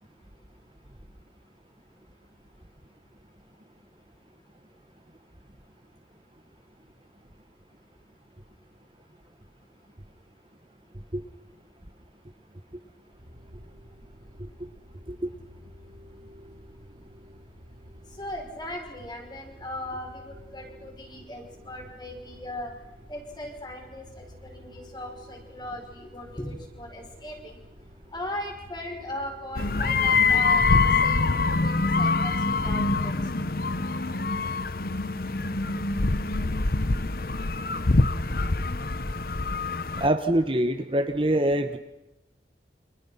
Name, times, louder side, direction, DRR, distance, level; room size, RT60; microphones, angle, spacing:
sound 1, 13.1-30.9, equal, 50° right, 3.4 m, -50 dB
voice 1, 18.2-22.7 23.1-27.5 28.1-33.2, left 1 dB, 25° left, 2 dB, 5.5 m, -38 dB
sound 2, 29.6-40.1, left 3 dB, 55° left, 0.9 m, -24 dB
voice 2, 40.0-41.8, right 1 dB, 30° right, 7 dB, 1.3 m, -24 dB
29.5 x 26.0 x 5.8 m, 0.92 s
head